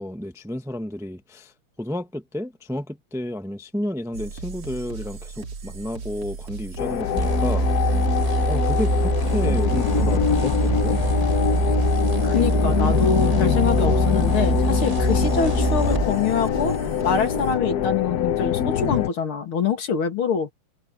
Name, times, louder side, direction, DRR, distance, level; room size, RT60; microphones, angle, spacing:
voice 1, 0.0-7.6 8.5-11.0, left 1 dB, ahead, 0.7 m, -31 dB
sound 1, 4.1-17.6, right 5 dB, 80° right, 3.2 m, -37 dB
sound 2, 6.8-19.1, left 10 dB, 60° left, 1.1 m, -24 dB
sound 3, 7.2-16.1, right 1 dB, 20° right, 1.4 m, -23 dB
voice 2, 12.2-20.5, left 6 dB, 75° left, 3.1 m, -25 dB
omnidirectional pair, 2.3 m